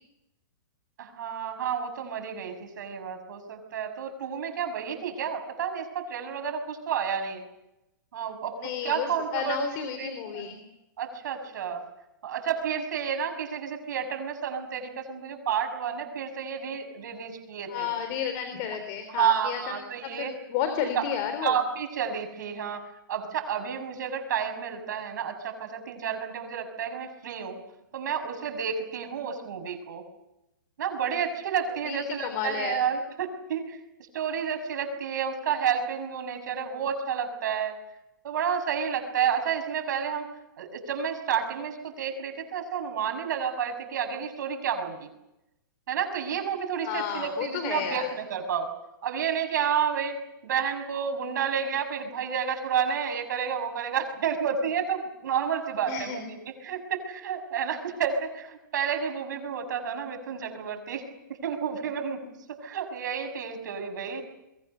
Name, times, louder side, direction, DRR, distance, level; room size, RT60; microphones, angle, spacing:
voice 1, 1.0-7.4 8.1-8.6 8.8-10.4 11.0-11.8 12.2-17.9 19.1-20.4 21.0-21.1 21.4-27.6 27.9-30.0 30.8-33.8 34.1-37.8 38.2-40.3 40.6-45.1 45.9-48.7 49.0-50.2 50.4-62.3 62.6-64.2, right 7 dB, 65° right, 6 dB, 6.3 m, -30 dB
voice 2, 8.6-10.6 17.7-21.6 31.8-32.0 32.2-32.8 46.8-48.1 55.9-56.2, left 8 dB, 35° left, 8 dB, 3.4 m, -32 dB
29.0 x 22.5 x 6.9 m, 0.91 s
hypercardioid pair, 150°, 11 cm